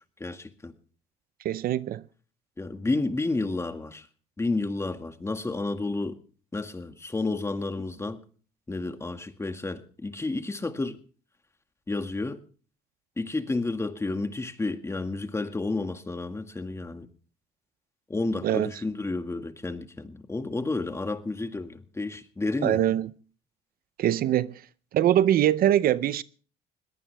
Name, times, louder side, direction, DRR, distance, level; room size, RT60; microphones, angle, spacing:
voice 1, 0.2-0.7 2.6-4.1 4.4-6.2 6.5-8.2 8.7-11.0 11.9-12.4 13.2-17.1 18.1-22.8, left 3 dB, 15° left, 1.9 m, -31 dB
voice 2, 1.4-2.0 18.4-18.7 22.6-23.1 24.0-24.6 24.9-26.2, right 11 dB, 60° right, 0.7 m, -23 dB
22.0 x 18.0 x 3.4 m
cardioid pair, 110°, 17 cm